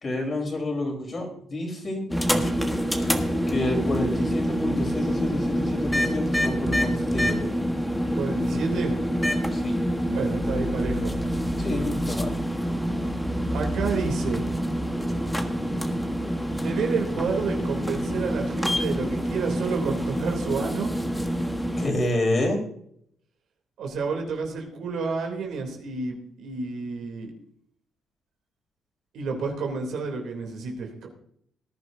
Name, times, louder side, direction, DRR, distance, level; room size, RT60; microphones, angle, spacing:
voice 1, 0.0-2.1 3.5-7.4 9.5-9.8 11.6-12.3 21.8-22.6, left 1 dB, 40° left, 1 dB, 4.2 m, -28 dB
sound 1, 2.1-21.9, equal, 5° left, 1.4 m, -26 dB
voice 2, 8.1-9.0 10.1-11.2 13.5-14.5 16.6-21.0 23.8-27.3 29.1-31.1, right 4 dB, 75° right, 2 dB, 3.1 m, -30 dB
19.5 x 10.5 x 2.7 m, 0.67 s
cardioid pair, 90°, 0 cm